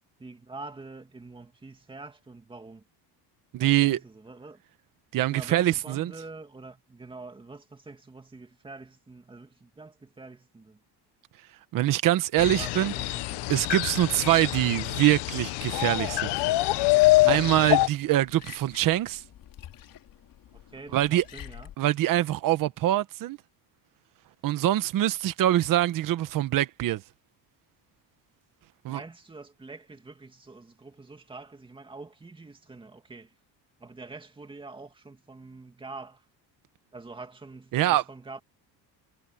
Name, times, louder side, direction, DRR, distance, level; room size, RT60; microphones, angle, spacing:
voice 1, 0.2-2.8 3.6-4.6 5.3-10.8 12.4-13.5 20.7-21.7 28.9-33.3 33.8-36.2 36.9-38.4, right 3 dB, 10° right, 2.4 m, -45 dB
voice 2, 3.5-4.0 5.1-6.1 11.7-12.9 13.5-16.3 17.3-19.2 20.9-21.2 21.8-23.4 24.4-27.0 28.8-29.0 37.7-38.0, right 14 dB, 50° right, 1.0 m, -24 dB
sound 1, 12.4-17.9, left 19 dB, 70° left, 0.9 m, -25 dB
Liquid, 15.6-21.7, left 11 dB, 50° left, 3.6 m, -49 dB
cardioid pair, 180°, 43 cm